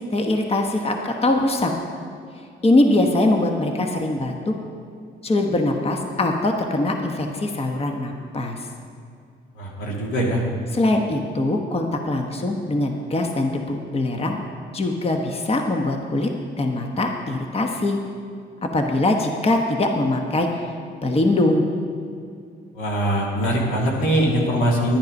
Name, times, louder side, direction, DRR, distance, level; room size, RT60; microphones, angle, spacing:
voice 1, 0.0-1.7 2.6-4.5 5.2-8.6 10.7-14.4 14.7-16.3 16.6-18.0 18.6-20.5 21.0-21.7, left 2 dB, 30° left, 3 dB, 1.1 m, -22 dB
voice 2, 9.6-10.4 22.7-25.0, equal, 85° left, -2 dB, 2.4 m, -22 dB
10.5 x 10.5 x 5.3 m, 2.4 s
cardioid pair, 90°, 20 cm